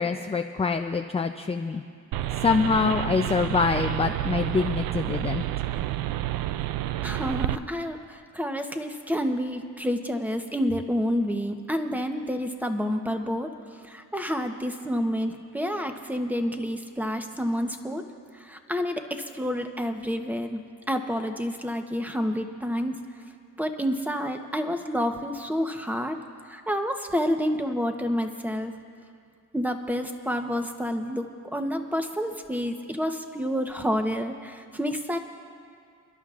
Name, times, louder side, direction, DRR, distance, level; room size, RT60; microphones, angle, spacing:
voice 1, 0.0-1.8 2.4-5.4, left 5 dB, 20° left, 5 dB, 0.4 m, -25 dB
sound 1, 2.1-7.6, right 14 dB, 90° right, 0.5 m, -29 dB
voice 2, 7.0-13.5 13.8-18.0 18.4-20.6 20.9-23.0 23.6-26.2 26.5-28.7 29.5-35.2, equal, 5° right, 5 dB, 0.9 m, -29 dB
30.0 x 11.5 x 2.5 m, 2.3 s
cardioid pair, 100°, 33 cm